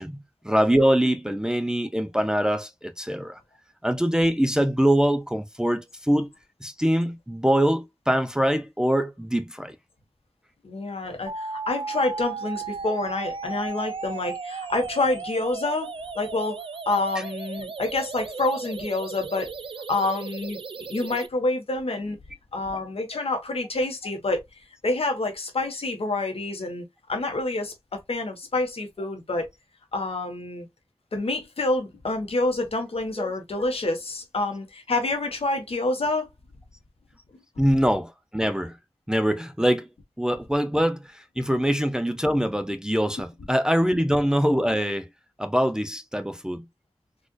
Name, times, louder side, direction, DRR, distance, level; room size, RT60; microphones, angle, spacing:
voice 1, 0.0-3.4 3.8-6.3 6.6-9.8 17.2-17.3 33.2-33.3 37.6-38.8 39.1-39.9 40.2-45.1 45.4-46.6, equal, 5° right, 0.5 m, -23 dB
voice 2, 10.6-15.9 16.1-16.6 16.9-19.5 19.9-20.6 20.9-22.2 22.5-24.4 24.8-29.5 29.9-30.7 31.1-36.3 37.6-37.7, left 2 dB, 85° left, 1.1 m, -27 dB
sound 1, 11.3-21.3, right 4 dB, 65° right, 0.4 m, -35 dB
4.2 x 2.5 x 2.3 m
wide cardioid pair, 55°, 10 cm